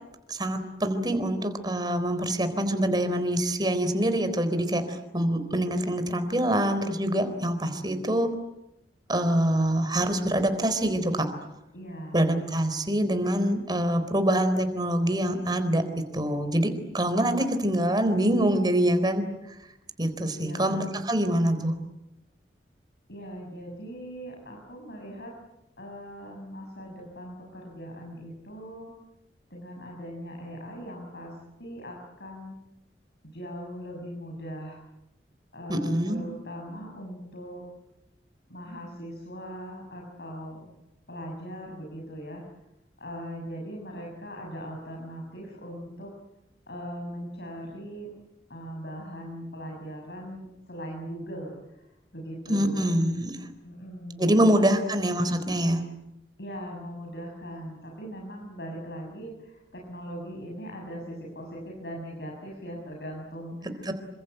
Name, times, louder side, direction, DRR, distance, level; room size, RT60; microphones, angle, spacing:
voice 1, 0.3-8.3 9.1-11.3 12.1-15.8 16.1-19.3 20.0-21.8 35.7-36.2 52.5-53.4 54.2-55.8 63.9-64.0, right 1 dB, 25° right, 9 dB, 3.9 m, -25 dB
voice 2, 11.7-12.2 20.3-21.0 23.1-25.3 25.8-28.9 29.5-32.6 33.2-34.8 35.5-37.7 38.5-40.7 41.1-42.4 43.0-46.1 46.7-48.1 48.5-51.9 52.1-52.9 53.6-54.9 56.4-63.9, equal, 70° left, 0 dB, 6.7 m, -40 dB
28.5 x 26.0 x 8.0 m, 0.90 s
head